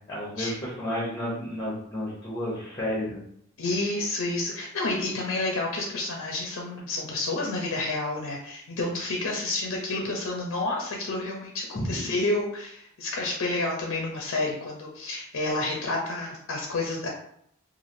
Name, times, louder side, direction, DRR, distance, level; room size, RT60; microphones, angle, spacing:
voice 1, 0.1-3.2 11.7-12.0, left 1 dB, 20° left, -6 dB, 0.7 m, -31 dB
voice 2, 3.6-17.1, left 2 dB, 65° left, 0 dB, 0.5 m, -30 dB
3.2 x 2.4 x 2.5 m, 0.68 s
head